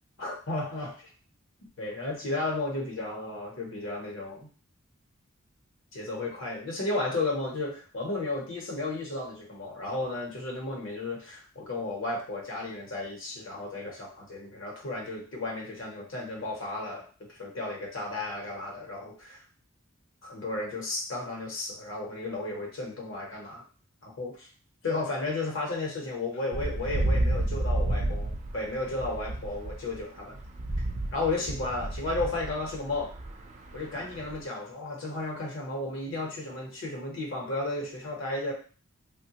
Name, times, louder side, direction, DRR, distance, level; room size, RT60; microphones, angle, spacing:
voice 1, 0.2-1.1 1.8-4.5 5.9-19.4 20.2-23.6 24.0-24.5 24.8-30.4 31.1-33.1 33.7-38.5, left 2 dB, 70° left, -2 dB, 0.8 m, -33 dB
sound 1, 26.5-34.4, right 1 dB, 35° right, 0.4 m, -31 dB
3.0 x 2.2 x 2.8 m, 0.39 s
head